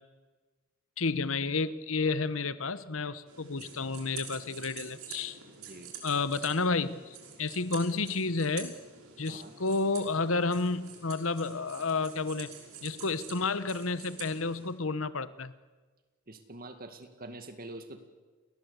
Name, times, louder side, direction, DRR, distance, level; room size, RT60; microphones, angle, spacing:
voice 1, 1.0-5.4 6.0-8.7 9.2-12.5 12.8-15.5, left 3 dB, 65° left, 15 dB, 1.1 m, -31 dB
sound 1, 3.3-14.7, right 6 dB, 85° right, 5.8 m, -47 dB
voice 2, 5.6-5.9 9.3-9.5 16.3-18.0, right 2 dB, 45° right, 8 dB, 2.2 m, -45 dB
30.0 x 20.0 x 8.3 m, 1.3 s
head